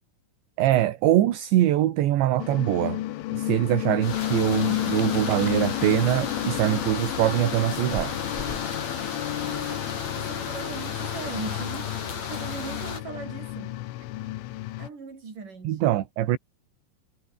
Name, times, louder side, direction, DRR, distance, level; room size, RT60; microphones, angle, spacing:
voice 1, 0.6-3.0 3.3-8.1 15.7-16.4, right 13 dB, 70° right, 3.7 m, -23 dB
sound 1, 2.4-14.9, left 15 dB, 85° left, 3.8 m, -32 dB
sound 2, 4.0-13.0, left 6 dB, 40° left, 4.2 m, -34 dB
sound 3, 4.3-9.4, right 1 dB, 10° right, 5.8 m, -45 dB
voice 2, 9.4-9.9 10.2-12.0 12.3-13.8 14.8-15.8, right 4 dB, 40° right, 7.4 m, -39 dB
omnidirectional pair, 5.6 m